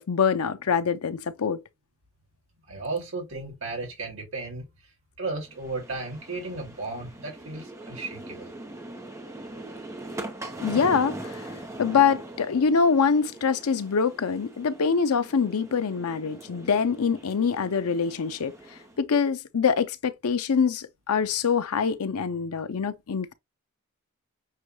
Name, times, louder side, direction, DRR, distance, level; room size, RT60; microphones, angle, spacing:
voice 1, 0.0-1.6 10.6-11.5 11.8-18.5 19.0-23.3, left 6 dB, 85° left, 0.6 m, -24 dB
voice 2, 2.7-4.6 5.2-8.5, right 3 dB, 60° right, 2.0 m, -34 dB
sound 1, 5.5-19.0, right 1 dB, 15° right, 0.7 m, -41 dB
6.4 x 2.3 x 3.0 m
head